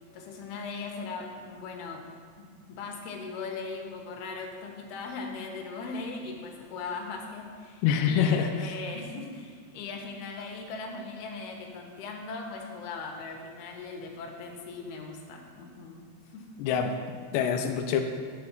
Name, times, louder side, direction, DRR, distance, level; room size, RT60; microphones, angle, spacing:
voice 1, 0.1-2.0 2.4-16.5, left 4 dB, 70° left, 1 dB, 2.6 m, -39 dB
voice 2, 7.8-8.5 16.6-17.0 17.3-18.0, left 7 dB, 90° left, 4 dB, 2.3 m, -25 dB
8.4 x 6.3 x 6.0 m, 2.1 s
omnidirectional pair, 5.5 m